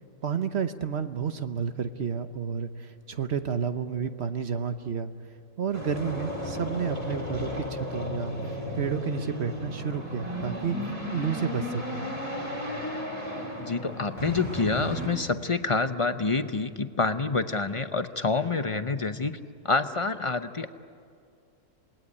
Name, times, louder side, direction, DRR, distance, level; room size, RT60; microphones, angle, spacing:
voice 1, 0.2-5.1 5.6-12.1, right 7 dB, 50° right, 9 dB, 1.1 m, -31 dB
sound 1, 5.7-15.1, left 1 dB, 20° right, 4.2 m, -34 dB
voice 2, 13.6-19.4 19.6-20.7, left 3 dB, 35° left, 9 dB, 0.5 m, -27 dB
27.5 x 20.0 x 9.8 m, 2.3 s
omnidirectional pair, 1.6 m